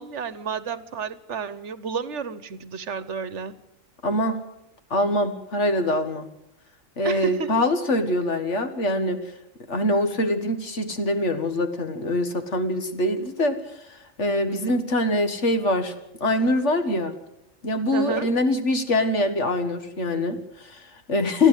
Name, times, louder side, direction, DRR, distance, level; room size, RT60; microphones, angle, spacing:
voice 1, 0.0-3.5 7.0-7.5 14.5-14.8 17.9-18.3, right 6 dB, 65° right, 15 dB, 1.3 m, -31 dB
voice 2, 4.0-4.4 4.9-6.3 7.0-9.2 9.7-15.9 16.2-17.1 17.6-21.5, left 1 dB, 65° left, 8 dB, 2.1 m, -24 dB
30.0 x 11.0 x 8.2 m, 0.82 s
omnidirectional pair, 1.3 m